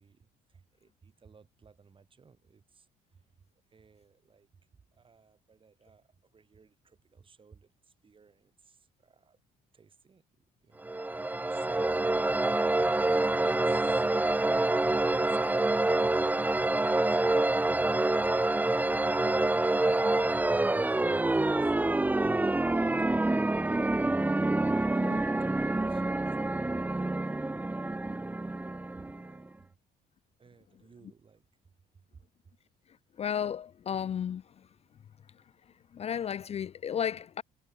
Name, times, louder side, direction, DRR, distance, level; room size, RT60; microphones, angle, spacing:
voice 1, 0.0-9.4 9.7-10.2 10.6-12.5 13.4-15.8 16.7-21.7 22.4-22.9 23.6-27.0 28.9-29.8 30.4-31.5 31.9-32.5, right 5 dB, 30° right, 7.6 m, -57 dB
sound 1, 10.8-29.5, right 2 dB, 10° right, 0.9 m, -27 dB
voice 2, 33.2-34.4 35.9-37.4, left 8 dB, 40° left, 0.5 m, -33 dB
cardioid pair, 110°, 17 cm